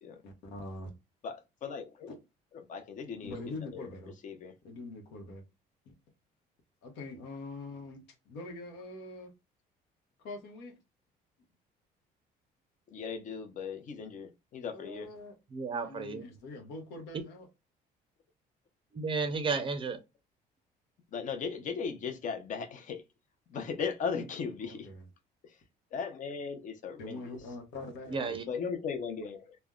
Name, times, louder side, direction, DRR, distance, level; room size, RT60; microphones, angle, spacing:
voice 1, 0.2-0.9 2.1-2.2 3.2-4.1 4.6-5.5 6.8-9.3 10.2-10.7 14.7-15.4 15.7-17.5 24.6-25.1 27.0-28.4, left 2 dB, 85° left, 0.9 m, -44 dB
voice 2, 1.2-2.1 2.7-3.3 3.7-3.9 4.2-4.5 12.9-15.1 21.1-23.0 23.5-24.9 25.9-27.4 28.5-29.6, left 6 dB, 50° left, 0.6 m, -37 dB
voice 3, 15.5-16.2 18.9-20.0 28.1-28.5, right 4 dB, 30° right, 0.5 m, -32 dB
3.3 x 2.1 x 2.3 m
cardioid pair, 110°, 17 cm